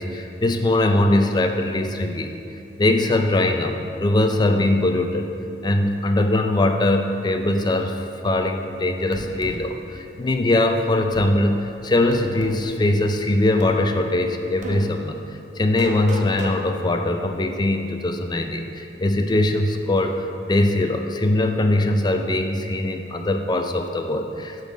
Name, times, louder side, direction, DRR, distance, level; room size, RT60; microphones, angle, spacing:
voice 1, 0.0-2.3 2.8-5.3 5.6-15.2 15.6-24.6, left 1 dB, 25° left, 5 dB, 0.4 m, -21 dB
sound 1, 9.1-9.6 11.1-11.3 12.1-12.6 13.6-13.8 14.6-14.8 15.8-16.6, right 2 dB, 45° right, 0.7 m, -32 dB
6.5 x 4.1 x 6.2 m, 2.6 s
head